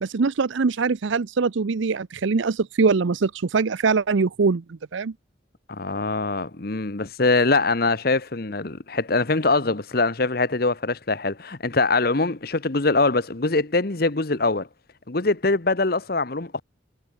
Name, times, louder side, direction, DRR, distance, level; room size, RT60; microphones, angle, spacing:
voice 1, 0.0-5.1, right 4 dB, 75° right, 0.6 m, -23 dB
voice 2, 5.7-14.7 15.1-16.6, left 3 dB, 50° left, 1.1 m, -23 dB
head